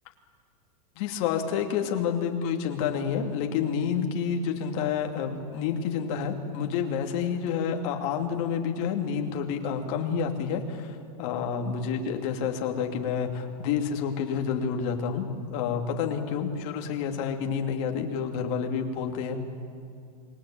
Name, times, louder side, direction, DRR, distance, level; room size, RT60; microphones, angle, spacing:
voice 1, 1.0-19.4, left 7 dB, 45° left, 3 dB, 2.8 m, -29 dB
27.5 x 20.5 x 8.8 m, 2.4 s
supercardioid pair, 160°, 20 cm